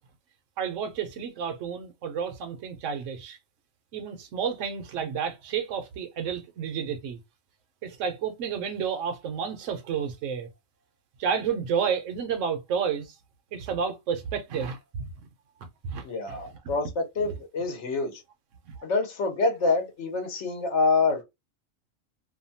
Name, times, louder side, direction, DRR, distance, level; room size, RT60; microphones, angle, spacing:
voice 1, 0.6-3.4 3.9-7.2 7.8-10.5 11.2-13.1 13.5-15.0 15.8-16.4 16.6-16.7 18.7-18.8, right 7 dB, 75° right, 1.0 m, -31 dB
voice 2, 16.0-18.2 18.8-21.2, left 3 dB, 65° left, 1.1 m, -26 dB
2.7 x 2.3 x 2.6 m
omnidirectional pair, 1.3 m